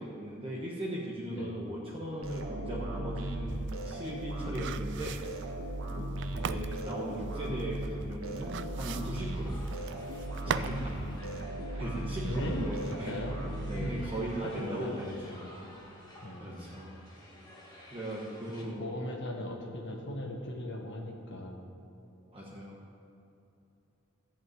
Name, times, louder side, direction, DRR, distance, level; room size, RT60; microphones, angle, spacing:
voice 1, 0.0-5.2 6.3-9.6 10.4-11.0 11.7-13.2 13.7-15.3 16.4-17.0 17.9-18.9 22.3-22.8, right 1 dB, 25° right, -5 dB, 1.3 m, -38 dB
voice 2, 1.3-1.6 4.2-4.3 5.9-6.3 10.6-11.5 12.2-13.4 13.8-15.6 16.2-16.8 18.6-21.6, left 1 dB, 60° left, 1 dB, 1.6 m, -39 dB
sound 1, 2.2-14.4, right 1 dB, 75° right, 1.4 m, -37 dB
sound 2, 3.5-10.9 11.2-11.3, right 8 dB, 60° right, 0.3 m, -40 dB
sound 3, 9.2-18.6, left 1 dB, 20° left, 2.1 m, -53 dB
14.0 x 5.4 x 9.2 m, 2.9 s
head